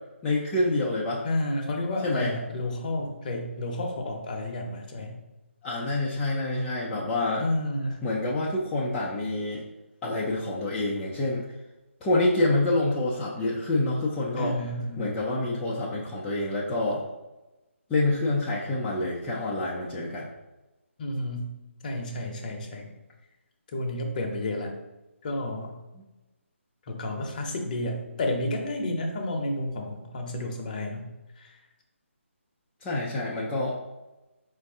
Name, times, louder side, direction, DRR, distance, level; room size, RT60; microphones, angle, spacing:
voice 1, 0.2-1.2 2.0-2.3 5.6-7.5 8.0-9.6 10.0-11.4 12.0-14.6 15.0-17.0 17.9-20.3 25.4-25.5 25.9-26.0 32.8-33.8, left 2 dB, 10° left, -7 dB, 0.3 m, -27 dB
voice 2, 1.2-5.1 7.4-8.0 14.4-15.1 21.0-21.5 21.8-22.9 23.7-24.7 25.2-25.7 26.9-31.1 31.4-31.5, left 1 dB, 35° left, 2 dB, 0.7 m, -31 dB
4.5 x 2.5 x 3.5 m, 1.0 s
figure-of-eight pair, 155°, 7 cm